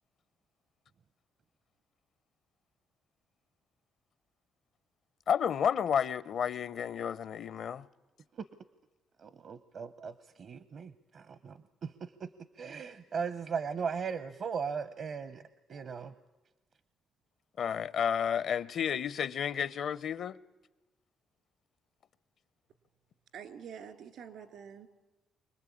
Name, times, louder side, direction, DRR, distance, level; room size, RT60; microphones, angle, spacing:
voice 1, 5.3-7.9 17.6-20.4, left 8 dB, 65° left, 0.7 m, -31 dB
voice 2, 9.2-12.3 12.5-15.4 15.7-16.1, right 6 dB, 55° right, 0.8 m, -38 dB
voice 3, 23.3-24.9, right 7 dB, 75° right, 2.4 m, -46 dB
25.0 x 19.5 x 8.6 m
cardioid pair, 90°, 0 cm